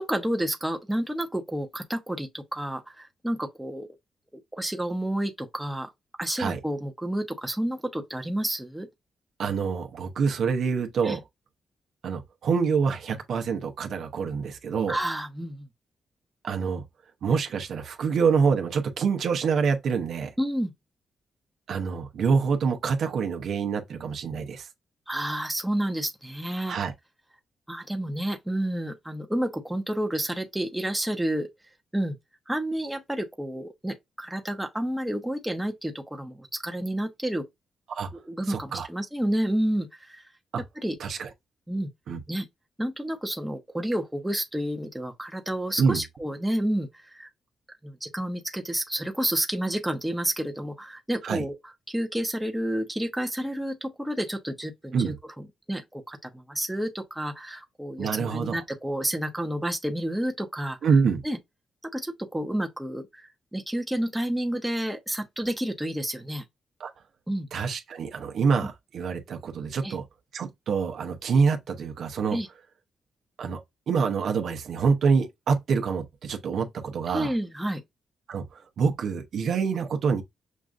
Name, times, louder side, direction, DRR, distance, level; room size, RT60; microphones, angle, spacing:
voice 1, 0.0-3.9 4.5-5.9 6.2-8.9 11.0-11.2 14.9-15.7 20.4-20.7 25.1-26.8 27.7-31.5 31.9-32.2 32.5-37.4 38.1-40.2 40.8-40.9 41.7-41.9 42.3-42.5 42.8-47.3 47.8-51.5 51.9-60.8 61.2-61.4 61.8-66.4 67.3-67.5 69.8-69.9 72.3-72.5 77.1-77.8, right 1 dB, 5° right, 0.8 m, -30 dB
voice 2, 9.4-11.2 12.0-15.0 16.4-16.8 17.2-20.3 21.7-24.7 26.7-26.9 37.9-38.1 38.5-38.9 40.5-40.6 41.0-41.3 42.1-42.2 45.8-46.0 51.2-51.4 54.9-55.2 58.0-58.6 60.8-61.2 66.8-66.9 67.5-70.0 70.3-72.4 73.4-73.6 73.9-77.3 78.3-80.2, right 5 dB, 70° right, 0.7 m, -26 dB
6.3 x 2.5 x 2.4 m
cardioid pair, 105°, 0 cm